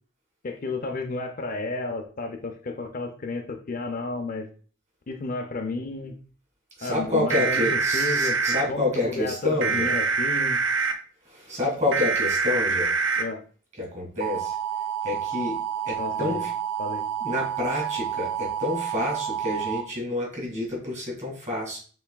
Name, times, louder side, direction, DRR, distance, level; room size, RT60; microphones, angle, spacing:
voice 1, 0.4-4.5 5.1-6.2 6.8-7.6 7.9-10.6 13.2-13.4 16.0-16.4 16.8-17.1, left 3 dB, 40° left, 4 dB, 0.4 m, -32 dB
voice 2, 6.8-9.9 11.2-13.1 13.8-14.6 15.0-15.6 15.8-16.5 17.2-21.8, left 2 dB, 35° right, -2 dB, 2.3 m, -28 dB
sound 1, 7.3-8.6 9.6-10.9 11.9-13.2 14.2-19.8, right 5 dB, 60° right, 0.6 m, -26 dB
6.9 x 3.2 x 2.2 m, 0.41 s
head